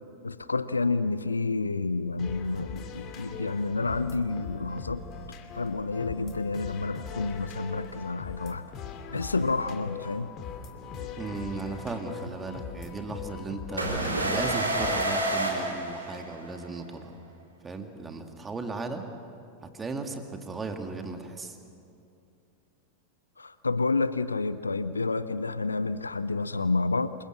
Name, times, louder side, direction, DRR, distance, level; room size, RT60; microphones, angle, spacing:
voice 1, 0.2-5.0 5.5-8.7 9.1-10.3 23.4-27.1, left 3 dB, 80° left, 15 dB, 0.7 m, -29 dB
sound 1, 2.2-15.3, left 6 dB, 35° left, 2.6 m, -41 dB
voice 2, 11.2-17.1 17.6-19.0 19.6-21.6, right 3 dB, 15° right, 5 dB, 2.3 m, -36 dB
sound 2, 13.8-16.6, right 1 dB, 80° right, 3.9 m, -28 dB
28.0 x 23.0 x 6.5 m, 2.6 s
figure-of-eight pair, 90°, 0 cm